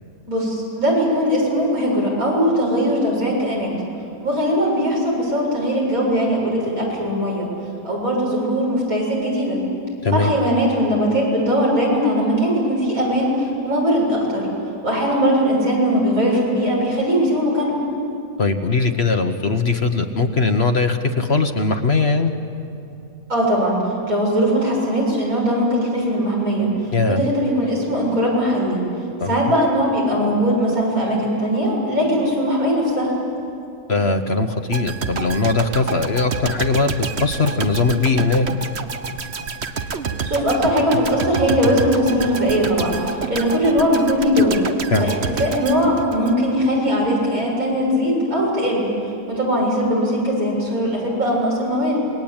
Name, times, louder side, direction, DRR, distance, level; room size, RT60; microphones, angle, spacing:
voice 1, 0.3-3.7 4.2-7.5 7.8-9.6 10.1-14.5 14.8-17.8 23.3-23.8 24.1-26.7 27.1-28.8 29.2-33.1 40.2-44.6 45.0-48.9 49.3-52.0, equal, 75° right, -3 dB, 7.7 m, -20 dB
voice 2, 10.0-10.3 18.4-22.3 26.9-27.2 29.2-29.4 33.9-36.9 37.2-38.5 44.9-45.1, left 3 dB, 45° left, 7 dB, 1.3 m, -20 dB
sound 1, 34.7-46.7 47.0-47.2, right 4 dB, 50° right, 1.3 m, -28 dB
27.5 x 21.5 x 8.9 m, 2.6 s
omnidirectional pair, 1.5 m